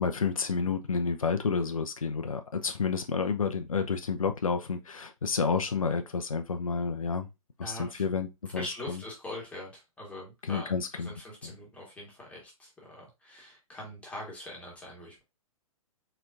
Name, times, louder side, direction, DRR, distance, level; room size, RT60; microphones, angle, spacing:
voice 1, 0.0-7.3 7.6-8.3 8.5-9.0 10.4-11.1 11.4-11.5, left 5 dB, 75° left, 0.6 m, -30 dB
voice 2, 7.6-8.0 8.5-15.2, left 1 dB, 5° left, 1.8 m, -43 dB
4.4 x 4.3 x 2.5 m
figure-of-eight pair, 115°, 18 cm